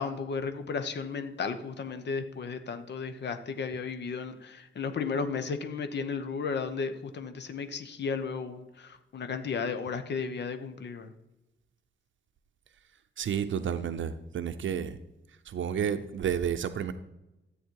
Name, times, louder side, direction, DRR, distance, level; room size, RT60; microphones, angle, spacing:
voice 1, 0.0-11.1, left 5 dB, 60° left, 8 dB, 0.9 m, -34 dB
voice 2, 13.2-15.0 15.4-16.9, right 8 dB, 70° right, 9 dB, 0.6 m, -31 dB
13.5 x 8.5 x 4.7 m, 0.98 s
wide cardioid pair, 165°, 21 cm